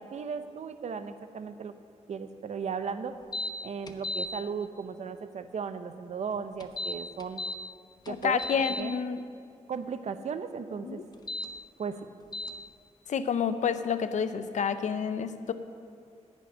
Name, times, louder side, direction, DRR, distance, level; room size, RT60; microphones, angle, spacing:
voice 1, 0.0-1.7 2.1-3.2 3.6-7.4 8.1-8.4 8.7-8.9 9.7-11.0 11.8-12.1, right 6 dB, 70° right, 10 dB, 0.6 m, -36 dB
sound 1, 3.3-3.5 3.9-4.3 6.6-7.6 8.1-8.8 11.1-11.5 12.3-12.5, left 2 dB, 35° left, 0.7 m, -34 dB
voice 2, 8.1-9.2 10.8-11.0 13.1-15.5, left 7 dB, 85° left, 11 dB, 0.6 m, -29 dB
10.5 x 6.4 x 9.1 m, 2.2 s
wide cardioid pair, 150°, 12 cm